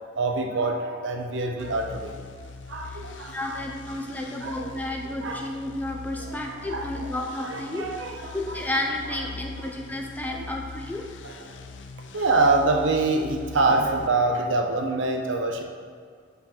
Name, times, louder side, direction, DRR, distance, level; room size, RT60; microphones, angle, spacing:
voice 1, 0.2-2.1 2.7-3.6 4.0-4.1 4.4-4.7 5.2-5.5 6.2-6.4 6.6-7.0 7.4-8.4 10.2-10.5 11.2-11.6 12.1-15.6, right 3 dB, 75° right, 3 dB, 0.7 m, -26 dB
sound 1, 1.6-14.1, left 4 dB, 70° left, 0.4 m, -42 dB
voice 2, 3.3-7.8 8.3-11.0, left 1 dB, 10° left, 0 dB, 0.5 m, -32 dB
7.7 x 4.0 x 4.4 m, 2.1 s
head